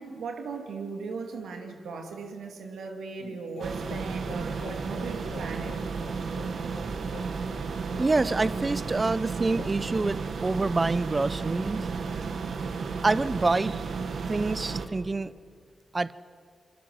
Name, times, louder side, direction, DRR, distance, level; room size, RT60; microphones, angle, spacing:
voice 1, 0.0-5.8 6.8-6.9, right 4 dB, 90° right, 4 dB, 2.6 m, -38 dB
sound 1, 3.2-10.9, left 5 dB, 85° left, 1.8 m, -47 dB
sound 2, 3.6-14.9, right 5 dB, 75° right, 1.8 m, -33 dB
voice 2, 8.0-12.3 13.0-13.8 14.3-15.3 15.9-16.2, right 3 dB, 40° right, 17 dB, 0.8 m, -27 dB
25.5 x 24.0 x 8.1 m, 2.2 s
cardioid pair, 50°, 0 cm